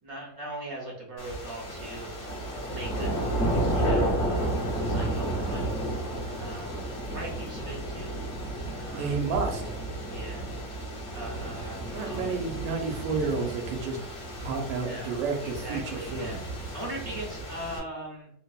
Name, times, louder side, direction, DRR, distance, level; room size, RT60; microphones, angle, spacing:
voice 1, 0.0-2.2 2.7-6.8 7.1-8.1 8.7-9.3 10.1-10.4 11.1-12.3 14.8-18.3, right 1 dB, 65° right, -3 dB, 1.0 m, -40 dB
sound 1, 1.2-17.8, right 1 dB, 50° left, 0.9 m, -32 dB
voice 2, 8.9-9.6 11.9-14.0 14.4-16.4, right 4 dB, 85° right, 2 dB, 1.4 m, -31 dB
3.3 x 2.0 x 2.3 m, 0.74 s
omnidirectional pair, 2.0 m